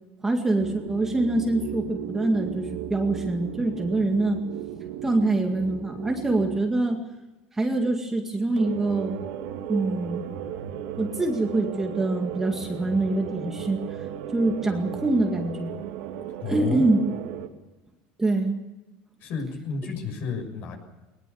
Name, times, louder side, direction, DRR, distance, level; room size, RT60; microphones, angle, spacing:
voice 1, 0.2-4.4 5.0-7.0 7.5-9.2 9.7-10.3 11.0-14.0 14.3-15.8 16.5-17.0 18.2-18.6, right 2 dB, 10° right, 2 dB, 2.1 m, -25 dB
sound 1, 0.6-6.6 8.6-17.5, right 10 dB, 75° right, 2.7 m, -36 dB
voice 2, 16.4-16.9 19.2-20.8, left 5 dB, 50° left, 5 dB, 6.8 m, -31 dB
21.5 x 20.5 x 7.2 m, 1.1 s
cardioid pair, 155°, 4 cm